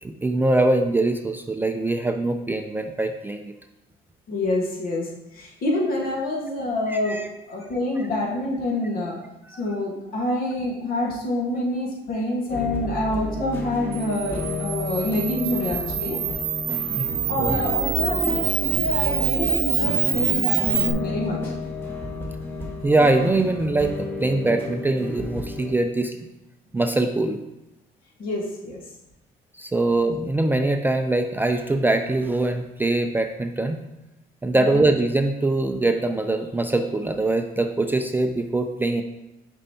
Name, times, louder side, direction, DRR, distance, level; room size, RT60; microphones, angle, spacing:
voice 1, 0.0-3.5 6.9-7.3 9.5-9.6 17.0-17.1 17.4-17.6 22.8-26.1 26.7-27.4 29.6-33.8 34.4-39.0, right 2 dB, 10° right, 5 dB, 0.3 m, -23 dB
voice 2, 4.3-7.2 7.5-9.2 9.6-16.2 17.3-21.5 28.2-28.8 34.5-34.8, left 1 dB, 60° left, 0 dB, 1.5 m, -27 dB
sound 1, 12.5-25.7, left 2 dB, 15° left, 1.1 m, -32 dB
Camera, 13.9-20.9, right 11 dB, 60° right, 0.6 m, -26 dB
6.6 x 5.3 x 2.8 m, 0.91 s
cardioid pair, 110°, 17 cm